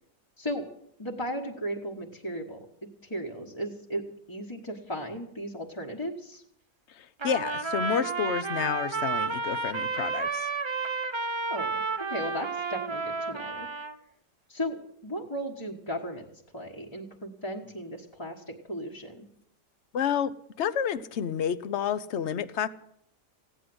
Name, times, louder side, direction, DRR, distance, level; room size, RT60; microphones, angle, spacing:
voice 1, 0.4-0.7 1.0-2.6 3.0-6.4 11.5-13.7 14.5-16.3 16.5-19.3, equal, 20° left, -2 dB, 1.3 m, -36 dB
voice 2, 7.0-10.5 19.9-22.7, left 8 dB, 55° left, 15 dB, 0.8 m, -30 dB
Trumpet, 7.2-14.0, right 4 dB, 30° right, 0.5 m, -31 dB
16.5 x 10.0 x 7.8 m, 0.73 s
omnidirectional pair, 1.8 m